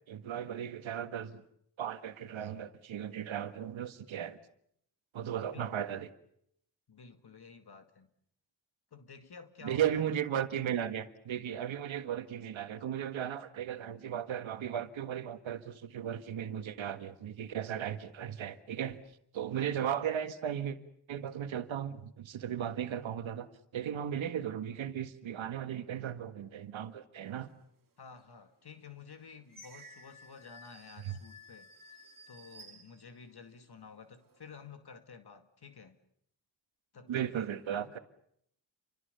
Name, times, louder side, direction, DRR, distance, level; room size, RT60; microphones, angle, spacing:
voice 1, 0.1-1.4 1.8-4.4 5.1-6.1 9.6-19.0 19.3-20.8 21.1-23.5 23.7-27.5 31.0-31.2 37.1-38.0, right 9 dB, 90° right, 1.7 m, -36 dB
voice 2, 6.9-8.1 8.9-10.0 19.6-19.7 28.0-36.0 36.9-38.0, left 5 dB, 55° left, 2.2 m, -52 dB
sound 1, 28.1-28.2 28.8-33.6 34.1-34.7, equal, 45° right, 2.6 m, -55 dB
29.0 x 25.0 x 6.8 m
cardioid pair, 70°, 45 cm